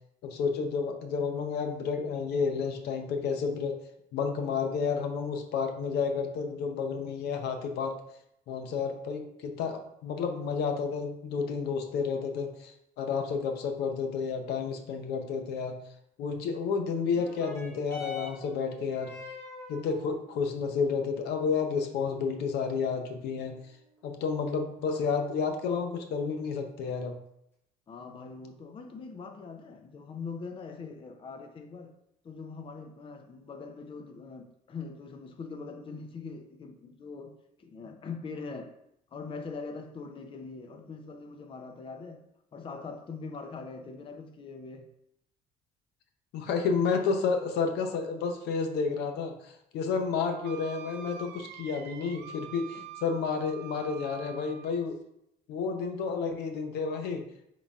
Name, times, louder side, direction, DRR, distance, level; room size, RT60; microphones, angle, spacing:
voice 1, 0.2-3.7 4.1-8.0 8.5-15.8 16.2-19.1 19.7-23.5 24.0-27.2 46.3-55.0 55.5-57.2, left 5 dB, 75° left, 0.7 m, -31 dB
sound 1, 17.1-26.1 26.9-27.0, left 4 dB, 15° left, 1.3 m, -47 dB
voice 2, 27.9-31.9 32.2-38.8 39.1-42.2 42.5-44.9 52.7-52.9, left 4 dB, 30° left, 0.5 m, -42 dB
Wind instrument woodwind instrument, 50.4-54.8, right 8 dB, 80° right, 0.4 m, -46 dB
5.3 x 3.7 x 2.4 m
cardioid pair, 110°, 17 cm